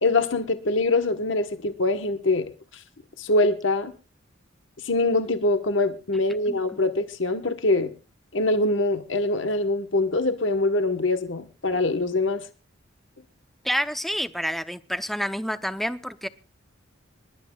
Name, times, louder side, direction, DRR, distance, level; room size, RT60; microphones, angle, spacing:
voice 1, 0.0-2.5 3.2-3.9 4.8-7.9 8.3-12.5, left 2 dB, 70° left, 8 dB, 1.2 m, -24 dB
voice 2, 6.5-6.8 13.6-16.3, equal, ahead, 11 dB, 0.6 m, -29 dB
26.5 x 12.0 x 2.3 m, 0.32 s
head